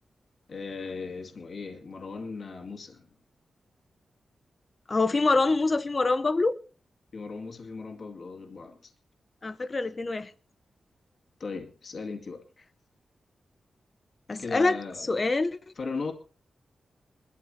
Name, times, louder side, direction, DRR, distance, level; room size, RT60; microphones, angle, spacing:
voice 1, 0.5-3.1 7.1-8.9 11.4-12.4 14.4-15.1 15.8-16.1, left 4 dB, 45° left, 2.4 m, -37 dB
voice 2, 4.9-6.6 9.4-10.3 14.3-14.8 15.1-15.6, left 3 dB, 25° left, 1.0 m, -25 dB
24.0 x 13.0 x 2.9 m
wide cardioid pair, 180°, 0 cm